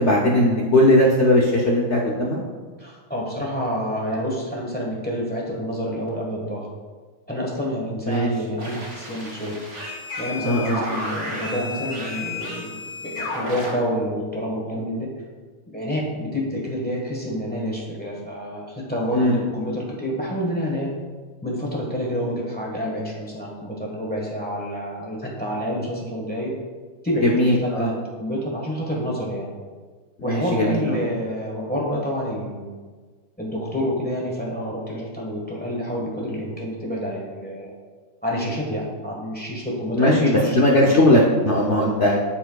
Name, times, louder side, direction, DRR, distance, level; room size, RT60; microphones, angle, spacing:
voice 1, 0.0-2.4 8.1-8.3 10.4-10.8 19.1-19.4 27.2-27.9 30.3-31.0 40.0-42.2, left 1 dB, 70° left, -3 dB, 0.6 m, -18 dB
voice 2, 2.8-6.7 7.3-9.6 10.2-12.8 13.0-15.1 15.7-21.0 21.4-26.6 27.0-29.5 30.2-32.7 33.4-37.7 38.2-40.6 40.8-41.0, equal, 5° left, -3 dB, 1.0 m, -28 dB
sound 1, 8.6-13.7, left 2 dB, 35° right, 1.9 m, -32 dB
12.5 x 4.5 x 2.3 m, 1.4 s
omnidirectional pair, 2.2 m